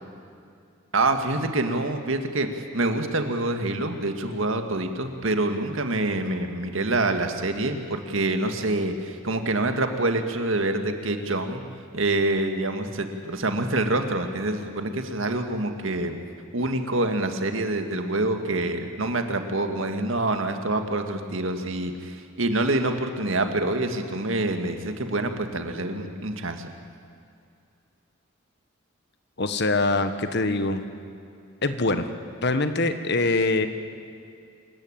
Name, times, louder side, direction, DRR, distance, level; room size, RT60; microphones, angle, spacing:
voice 1, 0.9-2.5 2.7-11.6 11.9-16.1 16.5-26.7, right 2 dB, 70° right, 6 dB, 1.9 m, -26 dB
voice 2, 29.4-30.8 31.6-32.1 32.4-33.7, left 2 dB, 55° left, 9 dB, 1.3 m, -23 dB
26.5 x 14.5 x 8.9 m, 2.5 s
head